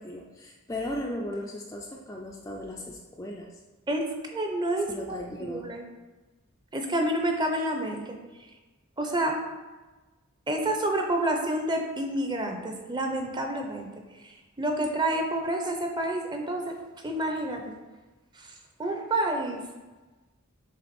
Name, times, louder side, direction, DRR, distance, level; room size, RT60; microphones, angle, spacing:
voice 1, 0.0-3.5 4.9-5.7, left 1 dB, 15° left, -1 dB, 0.4 m, -36 dB
voice 2, 3.9-5.8 6.7-8.5 9.0-9.4 10.5-16.8 17.0-17.7 18.3-19.6, right 1 dB, 20° right, 3 dB, 0.7 m, -29 dB
7.6 x 3.4 x 4.3 m, 1.2 s
head